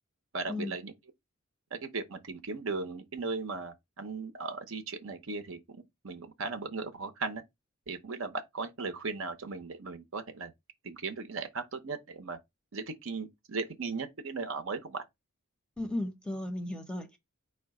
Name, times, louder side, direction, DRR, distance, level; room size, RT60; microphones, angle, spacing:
voice 1, 0.3-0.9 1.7-7.4 7.9-10.5 10.8-12.4 12.7-15.0, right 4 dB, 70° right, 0.8 m, -37 dB
voice 2, 15.8-17.2, left 1 dB, 5° left, 0.6 m, -35 dB
4.8 x 2.2 x 4.7 m
head